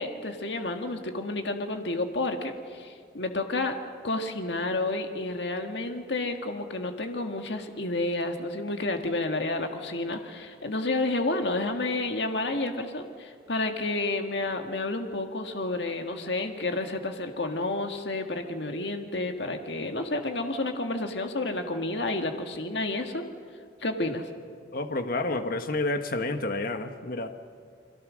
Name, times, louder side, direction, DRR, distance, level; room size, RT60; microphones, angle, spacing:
voice 1, 0.0-3.8 4.0-23.3 23.8-24.3, left 2 dB, 75° left, 5 dB, 1.8 m, -30 dB
voice 2, 24.7-27.3, left 2 dB, 55° left, 7 dB, 1.4 m, -29 dB
29.5 x 22.5 x 6.4 m, 2.1 s
head